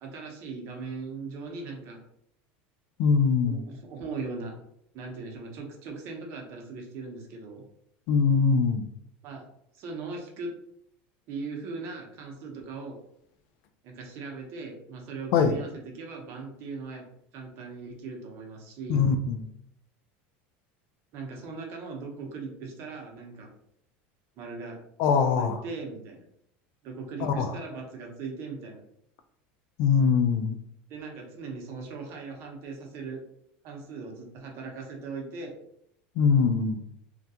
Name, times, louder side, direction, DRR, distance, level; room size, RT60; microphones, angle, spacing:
voice 1, 0.0-2.0 3.4-4.6 4.9-7.6 9.2-9.4 9.7-10.5 11.3-13.0 13.8-17.0 17.3-19.1 21.1-23.5 24.4-24.8 25.3-26.3 26.8-28.8 30.9-33.2 33.6-35.5, right 4 dB, 50° right, 1 dB, 0.7 m, -39 dB
voice 2, 3.0-3.6 8.1-8.8 15.3-15.6 18.9-19.4 25.0-25.6 27.2-27.5 29.8-30.6 36.2-36.8, left 5 dB, 60° left, 8 dB, 0.3 m, -22 dB
2.3 x 2.2 x 2.7 m, 0.72 s
supercardioid pair, 135°, 6 cm